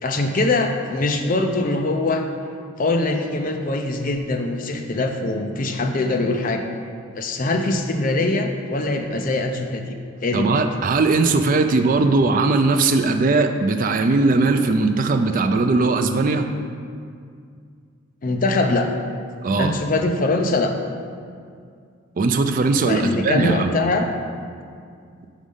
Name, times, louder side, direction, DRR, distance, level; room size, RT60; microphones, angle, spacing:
voice 1, 0.0-2.3 2.8-6.6 7.1-10.6 18.2-18.9 19.6-20.7 22.8-24.1, left 2 dB, 40° left, 4 dB, 0.5 m, -22 dB
voice 2, 10.3-16.5 19.4-19.8 22.2-23.8, right 3 dB, 40° right, 7 dB, 0.3 m, -19 dB
5.2 x 4.9 x 5.3 m, 2.2 s
head